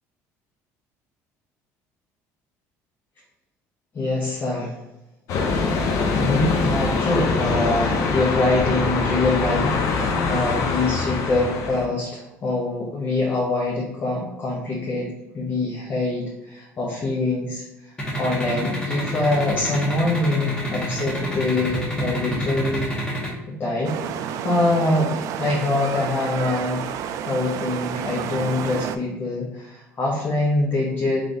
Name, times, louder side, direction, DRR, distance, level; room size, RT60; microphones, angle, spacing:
voice 1, 3.9-4.8 5.7-22.9 23.5-26.9 27.2-31.2, left 2 dB, 35° left, -3 dB, 1.0 m, -24 dB
sound 1, 5.3-11.9, left 4 dB, 60° left, 0.8 m, -23 dB
sound 2, 18.0-23.3, equal, 15° left, 1.4 m, -27 dB
sound 3, 23.8-29.0, right 9 dB, 65° right, 0.3 m, -30 dB
3.9 x 3.3 x 3.9 m, 0.92 s
cardioid pair, 135°, 6 cm